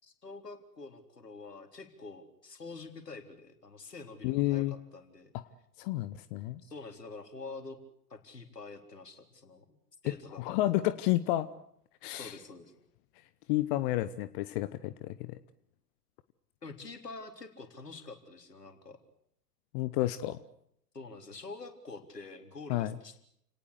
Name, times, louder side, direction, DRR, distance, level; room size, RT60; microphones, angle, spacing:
voice 1, 0.0-5.3 6.6-7.8 8.1-10.8 12.1-12.7 16.6-19.0 20.9-23.2, left 3 dB, 75° left, 6 dB, 3.9 m, -47 dB
voice 2, 4.2-4.7 5.8-6.6 10.4-11.5 12.0-12.3 13.5-15.3 19.7-20.4 22.7-22.9, left 16 dB, 35° left, 14 dB, 1.0 m, -30 dB
29.5 x 18.5 x 8.2 m, 0.72 s
figure-of-eight pair, 100°, 48 cm